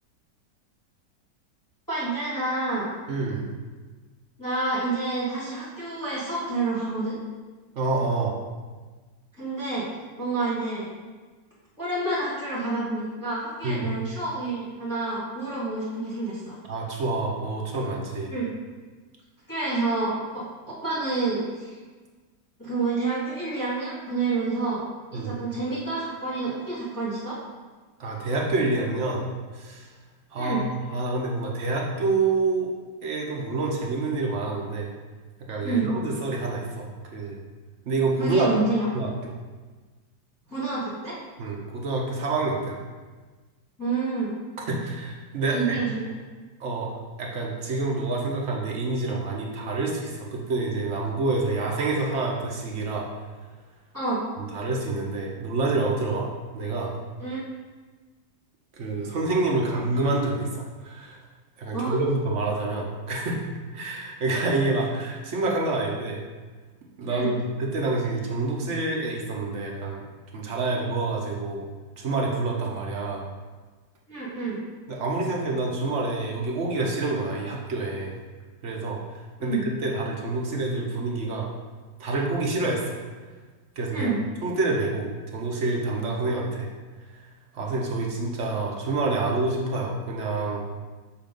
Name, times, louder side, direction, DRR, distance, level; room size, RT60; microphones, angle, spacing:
voice 1, 1.9-2.9 4.4-7.2 9.3-9.8 10.2-10.9 11.8-16.6 18.3-18.5 19.5-21.8 22.6-24.8 25.1-27.4 30.4-30.6 35.6-35.9 38.2-38.9 40.5-41.2 43.8-44.3 45.5-46.1 53.9-54.2 57.2-57.4 61.7-62.0 67.1-67.3 74.1-74.6 79.4-79.6 83.9-84.2, right 3 dB, 10° left, -9 dB, 1.5 m, -28 dB
voice 2, 3.1-3.5 7.7-8.4 13.6-13.9 16.7-18.3 25.1-25.4 28.0-29.3 29.5-29.9 30.3-32.7 33.0-34.9 35.5-37.4 37.8-38.5 38.9-39.3 41.4-42.8 44.7-45.8 46.6-46.9 47.2-53.1 54.4-56.9 58.8-61.2 61.6-63.4 63.7-66.2 67.0-70.0 70.3-71.7 72.0-73.3 74.9-78.1 78.6-79.0 79.4-81.5 82.0-83.0 83.8-84.1 84.4-86.7 87.1-87.3 87.5-90.6, right 3 dB, 55° right, -1 dB, 0.9 m, -27 dB
6.9 x 2.8 x 5.2 m, 1.4 s
omnidirectional pair, 1.9 m